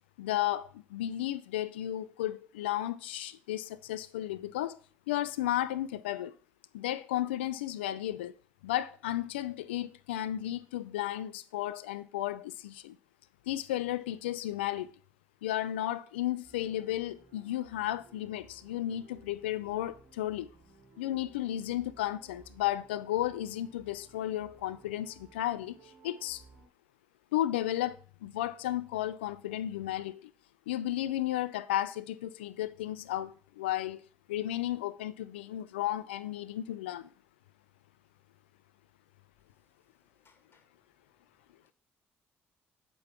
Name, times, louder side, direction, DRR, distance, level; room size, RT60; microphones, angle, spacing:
voice 1, 0.2-4.8 5.1-6.3 6.7-8.3 8.6-12.9 13.5-14.9 15.4-20.5 21.0-26.4 27.3-28.0 28.2-30.3 30.7-34.0 34.3-37.1, left 13 dB, 90° left, 0.3 m, -33 dB
sound 1, 16.4-26.7, right 4 dB, 90° right, 3.8 m, -59 dB
voice 2, 39.4-40.8 41.3-41.7, left 4 dB, 40° left, 2.1 m, -71 dB
7.9 x 5.4 x 5.8 m
hypercardioid pair, 50°, 6 cm